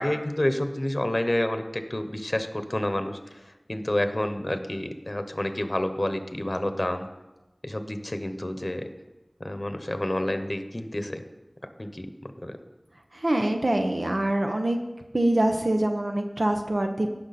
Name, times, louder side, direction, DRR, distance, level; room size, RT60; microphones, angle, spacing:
voice 1, 0.0-3.4 3.7-7.1 7.6-8.8 9.4-11.2 11.8-12.1 12.4-12.6, left 1 dB, 40° left, 8 dB, 0.9 m, -29 dB
voice 2, 13.1-14.8 15.1-17.1, right 1 dB, 70° right, 4 dB, 0.8 m, -24 dB
16.5 x 6.0 x 4.2 m, 1.0 s
wide cardioid pair, 40°, 0 cm